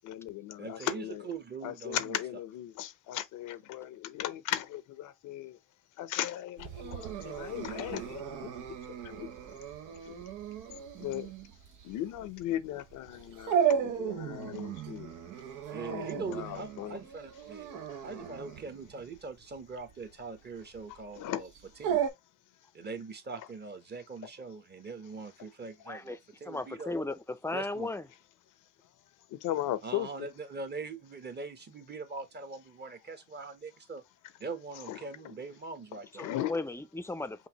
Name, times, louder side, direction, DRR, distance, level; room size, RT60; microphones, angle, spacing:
voice 1, 0.0-1.3 1.6-5.6 6.0-8.2 10.1-10.2 11.0-11.3 11.8-15.1 15.9-17.0 21.2-21.4 29.4-30.1 34.9-35.0 36.2-36.6, left 13 dB, 90° left, 0.7 m, -37 dB
voice 2, 0.6-2.2 15.7-21.5 21.8-22.0 22.7-26.9 27.5-27.9 29.8-34.0 34.4-36.3, right 4 dB, 35° right, 1.0 m, -42 dB
Dog, 6.6-22.1, right 8 dB, 90° right, 0.8 m, -36 dB
voice 3, 25.9-26.2 26.4-28.1 36.1-37.5, left 2 dB, 10° left, 0.5 m, -36 dB
5.7 x 2.6 x 2.8 m
cardioid pair, 90°, 30 cm